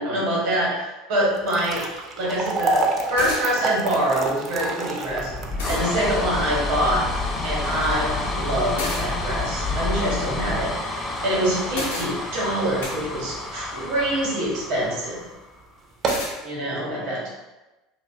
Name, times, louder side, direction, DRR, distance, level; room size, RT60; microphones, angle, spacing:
voice 1, 0.0-1.9 2.2-5.3 5.7-7.1 7.4-10.8 11.2-15.2 16.4-17.3, right 1 dB, 70° right, -4 dB, 1.0 m, -25 dB
sound 1, 1.3-13.6 14.0-14.1 14.8-15.0 15.3-15.4 15.8-16.4, right 3 dB, 40° right, 0.4 m, -30 dB
sound 2, 3.2-3.5 5.0-5.1 5.6-5.8 8.8-9.1 11.7-12.1 12.8-13.0 16.1-16.3, left 2 dB, 90° left, 0.6 m, -30 dB
sound 3, 5.1-15.6, left 2 dB, 25° left, 0.5 m, -29 dB
2.5 x 2.3 x 2.3 m, 1.1 s
hypercardioid pair, 85°, 0 cm